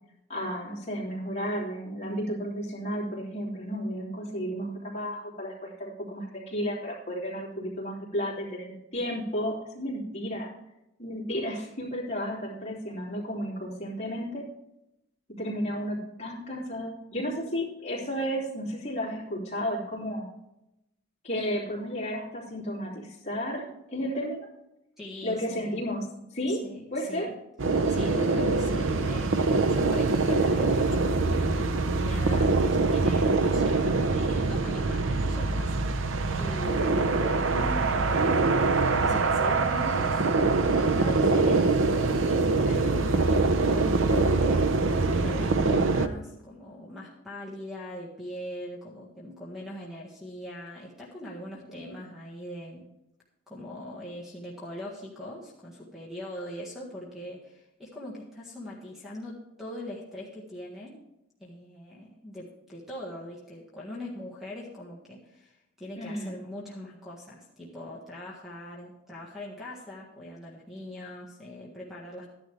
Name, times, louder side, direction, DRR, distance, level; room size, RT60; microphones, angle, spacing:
voice 1, 0.3-10.5 11.0-14.4 15.3-20.3 21.2-24.5 25.2-26.6 26.9-27.3 28.8-29.3 45.5-45.8 51.8-52.0 66.0-66.3, equal, 30° left, -4 dB, 2.9 m, -33 dB
voice 2, 25.0-25.8 26.5-27.3 27.7-33.8 34.1-38.6 39.0-40.3 40.8-44.7 45.1-52.9 53.5-60.9 61.4-72.3, left 1 dB, ahead, -4 dB, 1.7 m, -41 dB
sound 1, 27.6-46.1, right 3 dB, 65° right, 0.7 m, -24 dB
13.0 x 10.5 x 3.4 m, 0.88 s
head